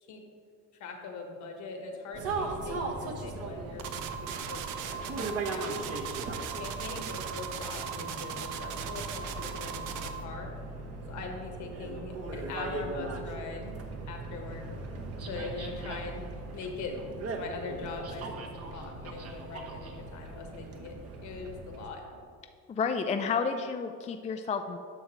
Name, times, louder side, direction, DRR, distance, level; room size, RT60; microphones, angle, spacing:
voice 1, 0.8-3.9 4.2-5.8 6.5-10.5 11.1-13.7 14.1-14.6 15.2-16.2 16.5-16.9 17.4-18.4 18.7-22.0, left 4 dB, 65° left, 3 dB, 1.4 m, -41 dB
sound 1, 2.1-21.9, right 3 dB, 50° right, 1.0 m, -39 dB
sound 2, 3.8-10.2, right 8 dB, 85° right, 0.7 m, -38 dB
voice 2, 22.7-24.8, left 5 dB, 25° left, 6 dB, 0.4 m, -30 dB
10.0 x 6.2 x 3.1 m, 2.3 s
cardioid pair, 105°, 31 cm